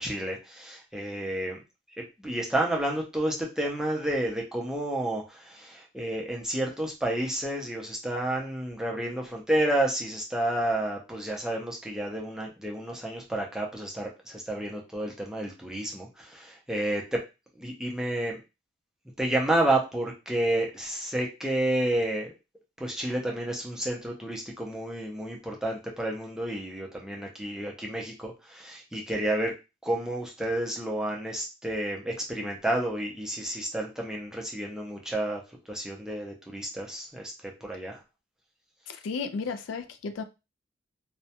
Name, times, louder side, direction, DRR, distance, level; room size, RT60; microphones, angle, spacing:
voice 1, 0.0-1.6 2.0-17.2 17.6-18.4 19.2-22.3 22.8-29.5 29.8-35.4 35.7-37.3 37.6-38.0, right 1 dB, 5° right, 0.4 m, -30 dB
voice 2, 38.9-40.2, left 4 dB, 75° left, 0.3 m, -33 dB
2.2 x 2.1 x 2.7 m
head